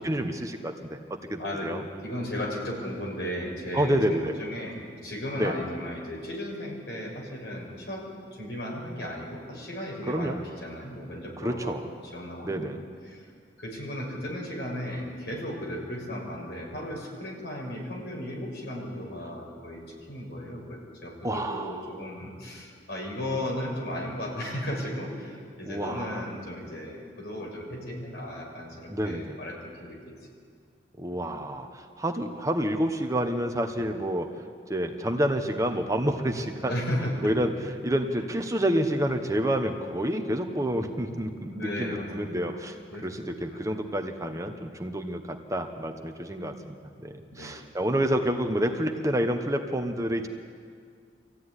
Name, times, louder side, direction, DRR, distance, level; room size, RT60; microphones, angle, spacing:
voice 1, 0.0-1.8 3.7-4.4 5.4-5.5 10.1-10.4 11.4-11.9 12.4-12.8 21.2-21.8 25.6-26.3 28.9-29.4 31.0-34.3 34.7-36.7 37.2-46.8 47.0-50.3, equal, 20° right, 4 dB, 1.2 m, -29 dB
voice 2, 1.4-1.7 2.0-10.4 10.6-11.8 12.1-13.3 13.6-19.8 20.1-30.1 33.8-33.9 36.6-37.3 41.5-42.6 42.9-43.8 47.3-47.5, left 1 dB, 65° left, -1 dB, 6.3 m, -35 dB
24.5 x 15.5 x 9.8 m, 2.2 s
head